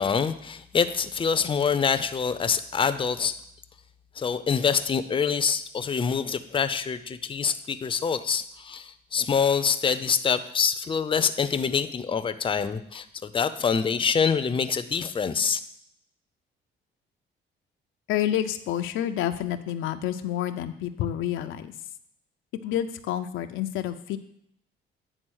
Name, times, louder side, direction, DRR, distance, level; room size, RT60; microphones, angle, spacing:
voice 1, 0.0-3.4 4.2-15.6, left 6 dB, 25° left, 10 dB, 0.5 m, -25 dB
voice 2, 18.1-21.7 22.6-24.2, left 11 dB, 90° left, 8 dB, 0.5 m, -29 dB
9.0 x 3.8 x 6.3 m, 0.72 s
cardioid pair, 90°, 20 cm